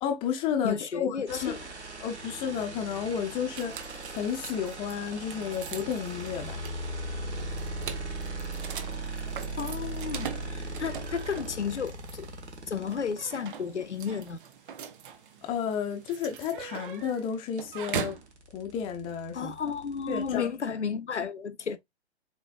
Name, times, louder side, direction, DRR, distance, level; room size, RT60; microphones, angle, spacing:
voice 1, 0.0-1.5 2.0-3.8 4.1-6.6 15.4-18.2 18.5-19.5 20.1-20.5, left 7 dB, 15° left, 0.5 m, -32 dB
voice 2, 0.6-1.6 9.6-12.3 12.7-14.4 19.3-21.8, left 6 dB, 85° left, 0.5 m, -33 dB
sound 1, 1.3-13.5 15.6-15.7 16.0-20.3, right 2 dB, 85° right, 1.3 m, -39 dB
Key unlocks a squeaky door the door opens and gets closed, 3.5-18.3, right 8 dB, 50° right, 0.7 m, -42 dB
4.2 x 3.1 x 2.3 m
figure-of-eight pair, 115°, 34 cm